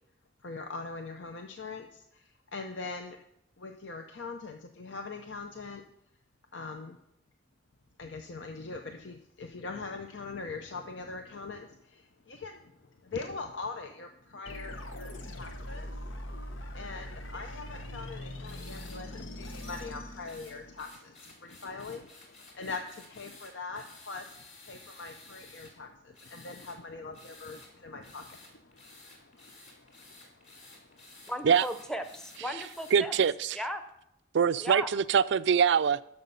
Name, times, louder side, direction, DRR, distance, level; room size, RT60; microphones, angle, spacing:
voice 1, 0.4-3.2 3.6-5.8 6.5-7.0 8.0-16.2 16.7-31.3, left 4 dB, 65° left, 0.7 m, -42 dB
sound 1, 14.5-20.9, left 1 dB, 90° left, 1.1 m, -42 dB
sound 2, 18.4-19.0 19.4-19.9 20.3-25.7 26.1-26.8 27.1-27.7 28.0-33.0, left 2 dB, 40° left, 2.5 m, -53 dB
voice 2, 31.3-33.1 33.5-33.8 34.6-34.9, equal, 5° left, 0.7 m, -36 dB
voice 3, 32.9-33.6 34.3-36.0, right 7 dB, 65° right, 0.4 m, -24 dB
11.5 x 6.6 x 5.4 m
head